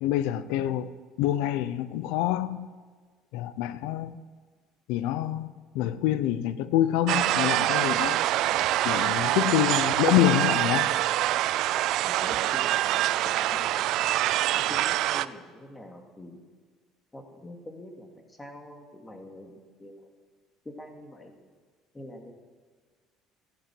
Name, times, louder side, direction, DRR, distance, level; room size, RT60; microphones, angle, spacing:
voice 1, 0.0-2.7 3.3-4.2 4.9-5.5 5.7-8.2 8.8-10.9, left 13 dB, 80° left, 0.7 m, -26 dB
sound 1, 7.1-15.3, right 14 dB, 70° right, 0.4 m, -25 dB
voice 2, 12.0-14.1 14.5-16.4 17.1-20.1 20.6-21.3 21.9-22.3, left 1 dB, 15° left, 2.5 m, -45 dB
15.5 x 11.5 x 7.7 m
supercardioid pair, 100°, 0 cm